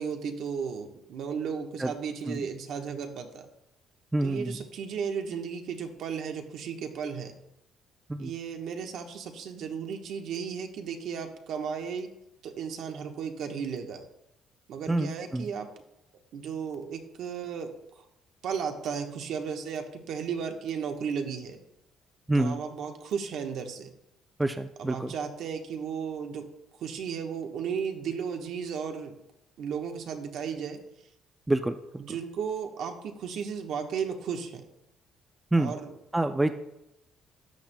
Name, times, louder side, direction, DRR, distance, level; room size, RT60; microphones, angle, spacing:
voice 1, 0.0-3.5 4.2-7.4 8.2-12.1 12.4-14.0 14.7-15.7 16.3-18.0 18.4-21.6 22.3-23.9 24.8-26.5 26.8-29.1 29.6-30.8 32.0-34.7 35.6-35.9, right 6 dB, 65° right, 4 dB, 1.1 m, -34 dB
voice 2, 4.1-4.6 8.1-8.3 14.9-15.5 22.3-22.6 24.4-25.1 31.5-32.0 35.5-35.7 36.1-36.5, right 2 dB, 10° right, 8 dB, 0.3 m, -27 dB
13.0 x 8.8 x 2.2 m, 0.87 s
cardioid pair, 140°, 0 cm